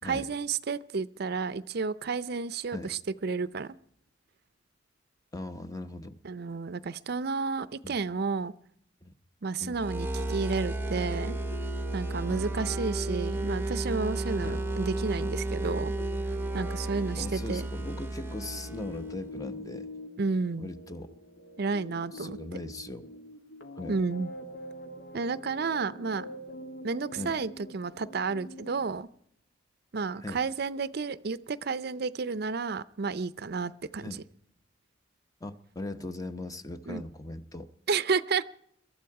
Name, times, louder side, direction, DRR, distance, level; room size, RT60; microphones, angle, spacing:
voice 1, 0.0-3.8 6.2-8.5 9.4-11.4 11.9-15.9 16.5-17.7 20.2-20.7 21.6-22.4 23.9-24.3 25.1-26.3 26.8-29.1 29.9-34.2 36.9-37.0 37.9-38.5, right 4 dB, 55° right, 16 dB, 0.5 m, -31 dB
voice 2, 5.3-6.2 7.8-8.0 9.0-9.1 9.6-9.8 12.3-12.5 14.4-14.6 17.2-19.9 20.6-21.1 22.1-23.1 23.8-24.0 27.2-27.4 30.2-30.4 34.0-34.2 35.4-37.7, left 2 dB, 20° left, 10 dB, 0.8 m, -39 dB
sound 1, 9.7-19.2, right 2 dB, 10° right, 0.8 m, -33 dB
sound 2, 10.1-28.9, left 1 dB, 90° left, 2.2 m, -45 dB
23.0 x 13.0 x 4.8 m, 0.70 s
head